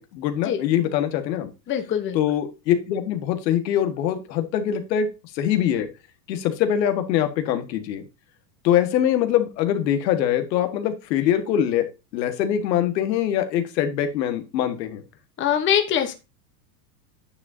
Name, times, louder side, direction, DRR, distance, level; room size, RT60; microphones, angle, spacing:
voice 1, 0.0-1.5 2.1-5.1 5.3-5.9 6.3-8.0 8.6-11.9 12.1-15.0, left 10 dB, 80° left, 8 dB, 1.7 m, -23 dB
voice 2, 1.7-2.2 15.4-16.1, left 9 dB, 25° left, 7 dB, 1.1 m, -23 dB
9.4 x 7.5 x 2.7 m, 0.27 s
supercardioid pair, 145°, 50 cm